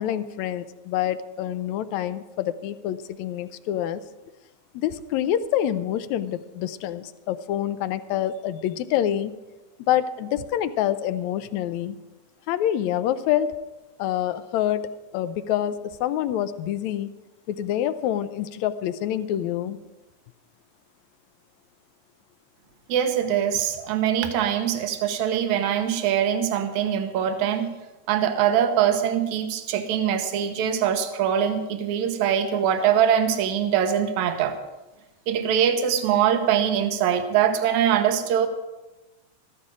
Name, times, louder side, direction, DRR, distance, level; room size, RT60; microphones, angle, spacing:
voice 1, 0.0-4.0 4.7-9.4 9.9-12.0 12.5-13.6 14.0-17.1 17.5-19.8, left 11 dB, 75° left, 13 dB, 1.9 m, -26 dB
voice 2, 22.9-27.7 28.1-34.6 35.3-38.5, right 9 dB, 75° right, 8 dB, 2.4 m, -23 dB
14.5 x 14.0 x 4.9 m, 1.1 s
omnidirectional pair, 3.5 m